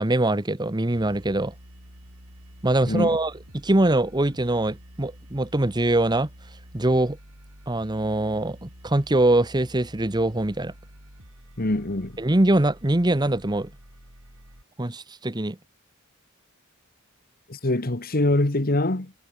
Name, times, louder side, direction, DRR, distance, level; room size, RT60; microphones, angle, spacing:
voice 1, 0.0-1.5 2.6-3.3 3.6-6.3 6.7-7.2 7.7-10.7 12.2-13.7 14.8-15.6, right 1 dB, 20° right, 1.0 m, -23 dB
sound 1, 0.9-14.6, equal, 85° right, 7.1 m, -48 dB
voice 2, 2.8-3.2 11.6-12.2 17.5-19.1, left 1 dB, 45° left, 1.6 m, -24 dB
head